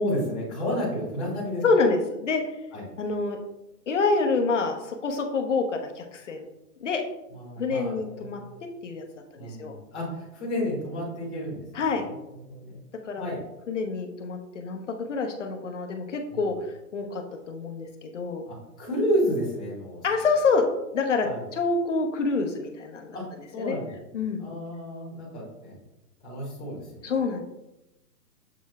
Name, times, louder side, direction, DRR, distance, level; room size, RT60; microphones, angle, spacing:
voice 1, 0.0-1.6 2.7-2.8 7.3-8.4 9.4-11.6 12.0-12.8 13.1-13.4 16.3-16.4 18.4-20.0 21.2-21.4 23.1-23.2 23.5-25.8 26.2-27.1, equal, 5° left, -18 dB, 0.6 m, -31 dB
voice 2, 1.6-2.6 3.0-3.4 3.9-6.5 6.8-7.0 7.6-8.4 8.8-9.0 9.4-9.8 11.7-12.0 13.0-13.3 13.7-16.5 16.9-18.5 20.0-20.7 20.9-23.2 23.6-23.8 24.1-24.4 27.0-27.4, left 4 dB, 50° left, 4 dB, 1.0 m, -27 dB
7.2 x 6.7 x 2.4 m, 0.92 s
hypercardioid pair, 165°, 48 cm